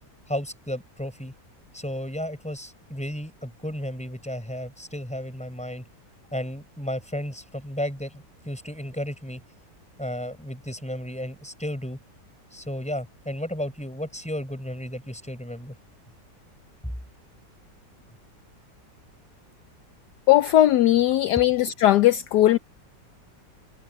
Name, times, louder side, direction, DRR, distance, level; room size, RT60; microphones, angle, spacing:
voice 1, 0.3-1.3 1.7-5.8 6.3-9.4 10.0-12.0 12.5-15.7 16.8-16.9, equal, 5° left, 5.0 m, -33 dB
voice 2, 20.3-22.6, left 13 dB, 70° left, 1.2 m, -18 dB
omnidirectional pair, 2.0 m